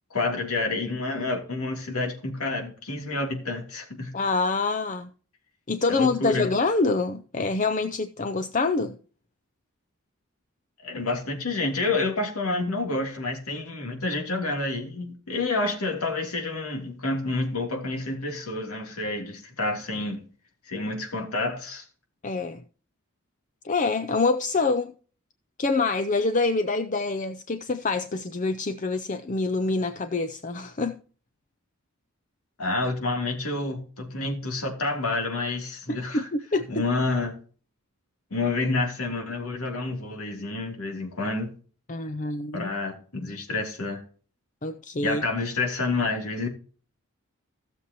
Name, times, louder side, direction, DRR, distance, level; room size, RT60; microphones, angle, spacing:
voice 1, 0.1-4.1 5.9-6.5 10.8-20.2 20.7-21.9 32.6-36.3 36.7-37.4 38.3-41.5 42.5-44.0 45.0-46.5, left 3 dB, 90° left, 3.1 m, -29 dB
voice 2, 4.1-5.1 5.7-9.0 22.2-22.6 23.6-24.9 25.6-31.0 35.9-36.6 41.9-42.7 44.6-45.2, left 3 dB, 35° left, 0.5 m, -26 dB
16.0 x 7.0 x 3.0 m
head